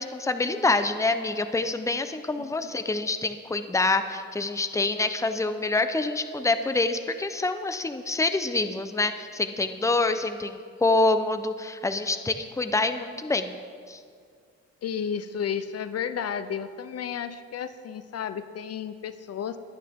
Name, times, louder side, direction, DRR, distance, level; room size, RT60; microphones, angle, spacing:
voice 1, 0.0-13.5 13.9-14.0, left 3 dB, 10° left, 9 dB, 0.8 m, -26 dB
voice 2, 14.8-19.6, left 8 dB, 55° left, 12 dB, 0.7 m, -32 dB
23.0 x 9.3 x 3.7 m, 2.1 s
cardioid pair, 90°, 30 cm